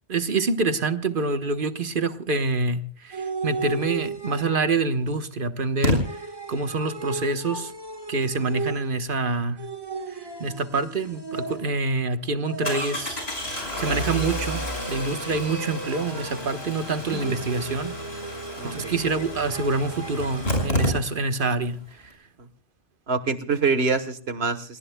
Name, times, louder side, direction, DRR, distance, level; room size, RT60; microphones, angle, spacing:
voice 1, 0.1-6.2 6.5-7.7 8.1-9.6 10.4-13.2 13.7-18.0 18.6-21.8, right 3 dB, 55° right, 1.3 m, -26 dB
sound 1, 3.1-4.8 6.0-9.1 9.6-11.9 12.4-13.2 13.8-16.6 17.0-20.6, right 3 dB, 25° right, 1.5 m, -36 dB
Engine starting, 4.3-4.4 5.8-6.0 11.0-11.1 11.5-11.6 12.6-21.5 21.7-21.8 22.0-22.1, left 1 dB, 75° left, 5.9 m, -30 dB
voice 2, 18.6-18.9 22.4-22.5 23.1-24.8, right 4 dB, 75° right, 1.6 m, -25 dB
29.5 x 19.5 x 2.2 m
omnidirectional pair, 1.1 m